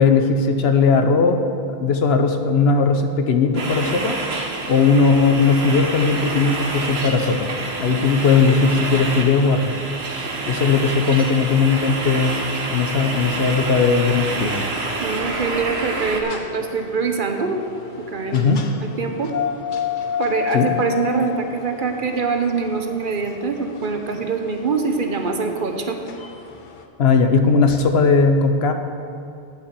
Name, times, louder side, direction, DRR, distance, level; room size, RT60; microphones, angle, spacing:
voice 1, 0.0-1.4 1.8-4.2 4.7-7.5 7.8-9.7 10.5-12.3 12.7-14.5 18.3-18.6 20.5-20.7 27.0-28.7, left 4 dB, 80° left, 6 dB, 1.1 m, -18 dB
sound 1, 3.6-16.2, right 3 dB, 80° right, 1.3 m, -28 dB
sound 2, 11.9-26.8, left 8 dB, 55° left, 0.9 m, -33 dB
voice 2, 15.0-17.6 18.1-18.5 19.0-19.3 20.2-26.0, right 4 dB, 55° right, 5 dB, 1.0 m, -24 dB
8.9 x 7.1 x 7.5 m, 2.7 s
omnidirectional pair, 1.0 m